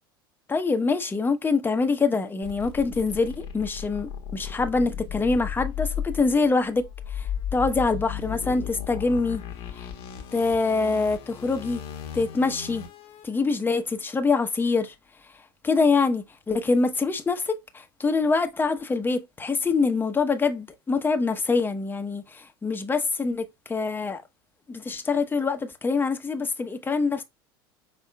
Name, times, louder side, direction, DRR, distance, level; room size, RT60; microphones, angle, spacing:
voice 1, 0.5-9.4 9.7-9.9 10.3-11.8 12.1-12.8 13.2-14.9 15.6-24.2 24.7-27.2, left 4 dB, 15° left, 0.9 m, -25 dB
sound 1, 2.4-13.2, left 9 dB, 55° left, 1.1 m, -35 dB
5.5 x 4.1 x 2.3 m
hypercardioid pair, 90°, 12 cm